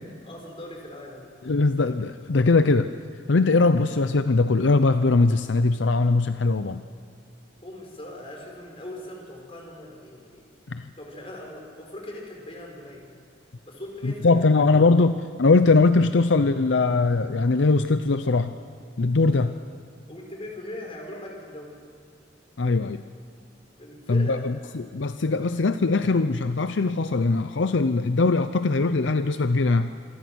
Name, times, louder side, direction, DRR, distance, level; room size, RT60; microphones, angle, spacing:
voice 1, 0.2-1.3 7.6-10.5 11.0-13.2 13.7-14.5 14.9-15.0 19.3-19.4 20.1-21.9 23.8-24.5 25.3-25.4, left 1 dB, 30° left, 0 dB, 5.4 m, -40 dB
voice 2, 1.4-2.9 3.3-6.8 10.7-10.9 14.0-18.5 19.0-19.5 22.6-23.0 24.1-29.9, left 3 dB, 75° left, 10 dB, 0.6 m, -21 dB
27.0 x 22.5 x 6.2 m, 2.2 s
head